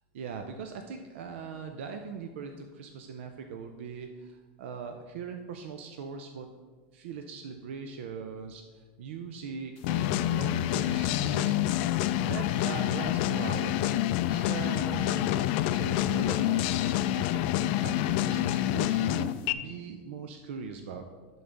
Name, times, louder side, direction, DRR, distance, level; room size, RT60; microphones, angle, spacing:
voice 1, 0.1-6.5 6.9-11.6 12.2-13.8 14.3-15.2 15.7-21.0, right 6 dB, 80° right, 5 dB, 0.5 m, -40 dB
sound 1, 9.8-19.5, left 12 dB, 60° left, 0.3 m, -27 dB
10.5 x 3.9 x 3.4 m, 1.5 s
supercardioid pair, 130°, 6 cm